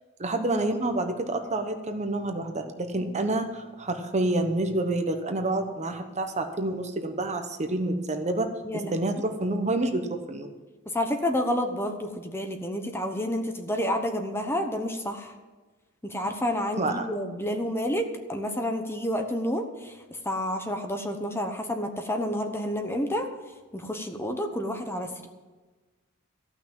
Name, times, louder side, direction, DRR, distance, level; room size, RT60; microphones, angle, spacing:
voice 1, 0.2-10.5 16.8-17.1, right 2 dB, 30° right, 6 dB, 1.0 m, -28 dB
voice 2, 8.6-9.1 10.9-15.3 16.0-23.3 23.7-25.3, left 1 dB, 10° left, 5 dB, 1.0 m, -29 dB
14.5 x 6.1 x 8.9 m, 1.3 s
head